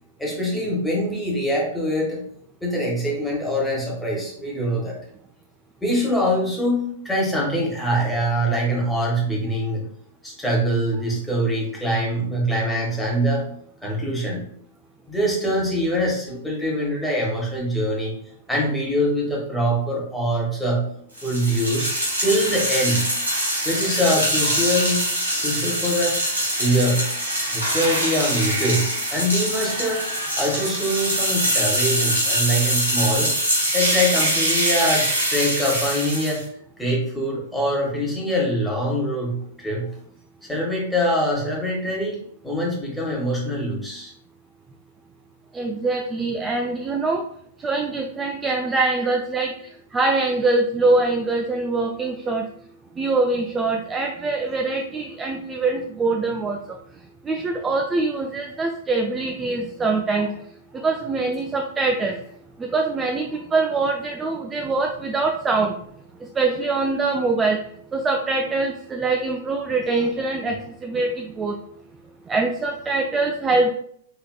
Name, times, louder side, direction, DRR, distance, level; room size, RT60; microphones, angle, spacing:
voice 1, 0.2-2.2 2.6-5.0 5.8-9.9 10.2-13.4 13.8-14.5 15.1-18.1 18.5-20.8 21.2-21.9 22.2-23.0 23.6-25.1 25.4-26.2 26.6-27.0 27.5-30.0 30.4-33.3 33.7-36.4 36.8-39.9 40.5-42.2 42.4-44.1 48.7-49.1 49.6-49.7 50.4-50.5, equal, 5° left, -4 dB, 1.4 m, -23 dB
sound 1, 21.2-36.4, right 1 dB, 85° right, 1.5 m, -23 dB
voice 2, 45.5-47.2 47.6-49.5 49.9-52.5 53.0-56.6 57.2-60.3 60.7-62.2 62.6-65.8 66.4-67.6 67.9-71.6 72.3-73.7, right 3 dB, 15° right, 2 dB, 0.3 m, -23 dB
4.7 x 3.1 x 2.3 m, 0.66 s
figure-of-eight pair, 100°, 0 cm